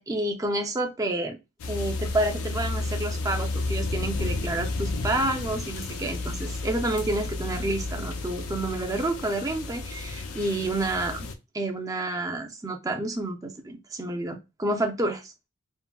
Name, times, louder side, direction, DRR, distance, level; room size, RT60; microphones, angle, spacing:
voice 1, 0.0-1.4 1.7-11.3 11.5-15.3, right 2 dB, 15° right, 3 dB, 0.4 m, -29 dB
sound 1, 1.6-11.3, left 3 dB, 75° left, 0.5 m, -32 dB
3.7 x 2.1 x 2.2 m, 0.25 s
head